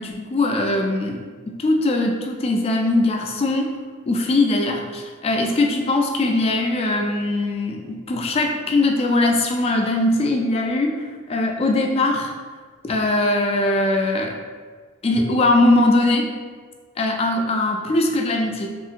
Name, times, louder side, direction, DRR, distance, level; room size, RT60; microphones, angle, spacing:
voice 1, 0.0-3.7 4.1-12.3 12.8-14.4 15.0-16.3 17.0-18.7, left 2 dB, 30° left, 2 dB, 0.3 m, -21 dB
3.0 x 2.7 x 2.4 m, 1.5 s
head